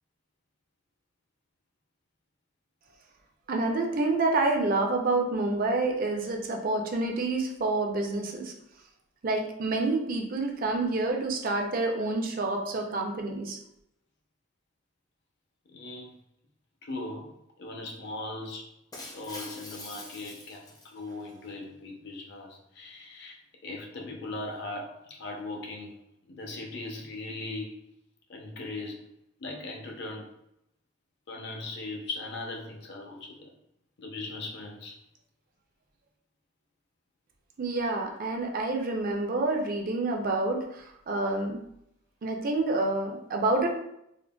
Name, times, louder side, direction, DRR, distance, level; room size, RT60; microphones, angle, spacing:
voice 1, 3.5-8.5 9.2-13.6 37.6-41.6 42.2-43.7, right 2 dB, 45° right, 2 dB, 0.4 m, -28 dB
voice 2, 15.7-16.1 16.8-18.7 19.1-27.8 28.3-29.1 29.4-30.4 31.3-33.5 34.0-34.9 38.8-38.9, left 2 dB, 60° left, 0 dB, 0.6 m, -39 dB
Shatter, 18.9-21.3, left 2 dB, 20° left, 0.4 m, -45 dB
3.7 x 2.1 x 2.2 m, 0.78 s
head